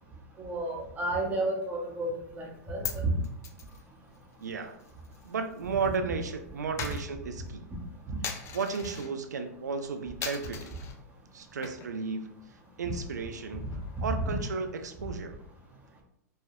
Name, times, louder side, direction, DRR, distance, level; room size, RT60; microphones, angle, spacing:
voice 1, 0.4-2.1 2.3-3.1 8.1-8.2 14.0-14.4, right 2 dB, 15° right, -2 dB, 0.9 m, -31 dB
Coin (dropping), 2.4-6.0 6.2-9.1 9.6-9.8 10.2-11.0 11.4-12.1 12.4-12.5 12.8-14.7, left 7 dB, 30° left, 0.4 m, -42 dB
voice 2, 4.4-4.8 5.2-7.6 8.5-10.7 11.3-12.3 12.8-13.7 14.0-15.3, right 5 dB, 90° right, 7 dB, 0.4 m, -34 dB
3.2 x 2.2 x 2.6 m, 0.74 s
hypercardioid pair, 110°, 9 cm